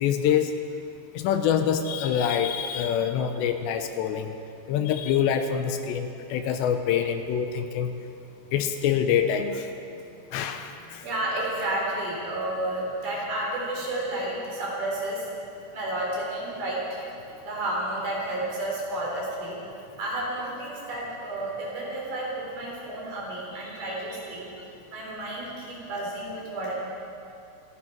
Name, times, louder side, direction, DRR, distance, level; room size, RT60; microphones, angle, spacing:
voice 1, 0.0-0.5 1.2-4.3 4.7-7.9 8.5-9.5 10.3-10.7, left 8 dB, 85° left, 7 dB, 2.9 m, -25 dB
voice 2, 10.8-15.3 15.7-17.0 17.4-19.6 20.0-24.5 24.9-26.7, right 1 dB, 60° right, -4 dB, 5.1 m, -31 dB
26.0 x 11.0 x 4.5 m, 2.6 s
omnidirectional pair, 5.2 m